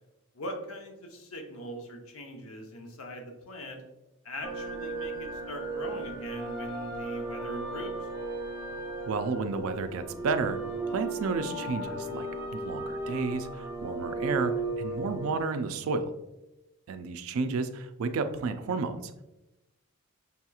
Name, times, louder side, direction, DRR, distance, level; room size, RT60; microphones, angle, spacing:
voice 1, 0.3-3.8 4.2-8.1, equal, 70° left, 3 dB, 0.7 m, -41 dB
sound 1, 4.4-15.4, right 2 dB, 15° right, 0.5 m, -35 dB
voice 2, 9.1-10.6 10.9-12.3 12.5-16.1 16.9-19.1, right 4 dB, 75° right, 10 dB, 0.4 m, -31 dB
5.5 x 2.9 x 2.3 m, 0.96 s
head